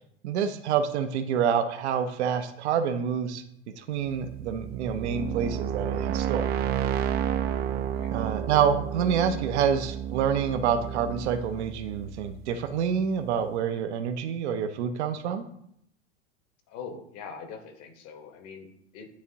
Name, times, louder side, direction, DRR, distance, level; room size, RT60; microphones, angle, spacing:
voice 1, 0.2-3.4 3.8-6.5 8.1-15.5, right 7 dB, 70° right, 8 dB, 0.7 m, -27 dB
sound 1, 4.1-12.9, right 9 dB, 30° right, 0.4 m, -31 dB
voice 2, 16.7-19.1, left 5 dB, 45° left, 6 dB, 1.1 m, -42 dB
9.5 x 3.6 x 2.8 m, 0.71 s
hypercardioid pair, 100°, 35 cm